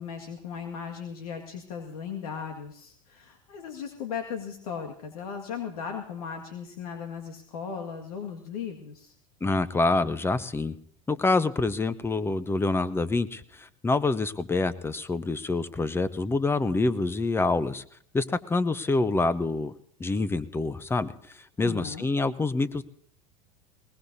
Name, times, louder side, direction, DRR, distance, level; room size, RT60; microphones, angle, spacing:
voice 1, 0.0-9.1 21.6-22.1, left 6 dB, 80° left, 2 dB, 2.0 m, -37 dB
voice 2, 9.4-10.8 11.1-17.8 18.1-19.7 20.0-22.8, left 3 dB, 15° left, 15 dB, 0.8 m, -26 dB
21.0 x 19.5 x 2.8 m, 0.66 s
hypercardioid pair, 105°, 19 cm